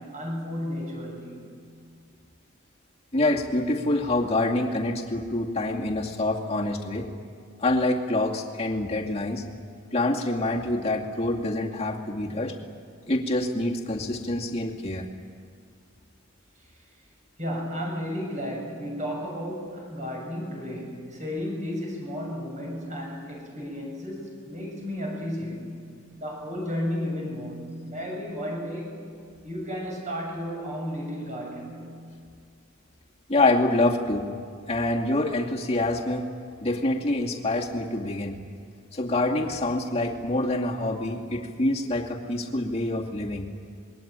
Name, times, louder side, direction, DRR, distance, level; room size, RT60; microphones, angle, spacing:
voice 1, 0.0-1.4 17.4-25.8 26.2-29.0 29.4-31.9, equal, 35° right, 0 dB, 7.3 m, -33 dB
voice 2, 3.1-7.1 7.6-9.4 9.9-12.5 13.1-15.0 33.3-34.3 34.7-36.2 36.6-38.4 38.9-43.5, left 2 dB, 30° left, 0 dB, 2.4 m, -26 dB
27.0 x 22.0 x 9.0 m, 2.2 s
head